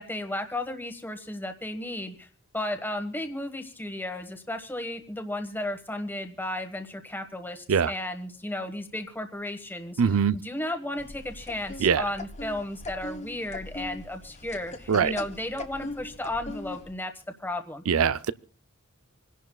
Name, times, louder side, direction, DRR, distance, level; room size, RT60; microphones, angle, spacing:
voice 1, 0.0-2.3 2.5-10.0 10.3-17.1 17.4-17.8, left 1 dB, 10° left, 1.4 m, -34 dB
voice 2, 10.0-10.4 11.8-12.1 14.9-15.1 17.9-18.3, right 6 dB, 70° right, 0.5 m, -22 dB
sound 1, 11.0-16.9, left 2 dB, 35° left, 1.1 m, -40 dB
27.5 x 11.0 x 2.3 m
head